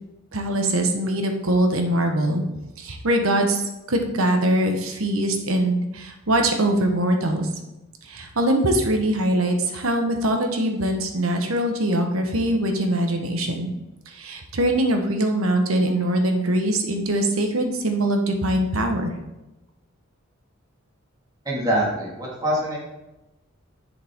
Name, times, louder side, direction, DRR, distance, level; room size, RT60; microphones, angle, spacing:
voice 1, 0.3-2.4 2.8-3.6 3.9-7.5 8.0-13.7 14.1-19.1, right 1 dB, 80° right, 4 dB, 1.2 m, -22 dB
voice 2, 21.5-22.8, right 1 dB, 20° right, -4 dB, 2.0 m, -24 dB
7.6 x 6.5 x 3.7 m, 0.97 s
head